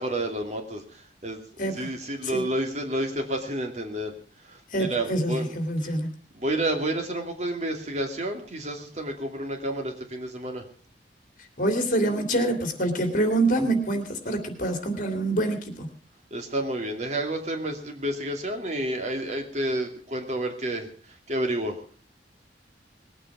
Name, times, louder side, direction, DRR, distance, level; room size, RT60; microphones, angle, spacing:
voice 1, 0.0-4.1 4.4-5.9 6.3-10.6 16.3-21.8, right 1 dB, 40° right, 3 dB, 2.6 m, -30 dB
voice 2, 1.6-1.9 2.3-2.5 4.7-6.1 11.6-15.9, right 1 dB, 45° left, 6 dB, 2.8 m, -26 dB
20.0 x 9.0 x 6.1 m, 0.44 s
head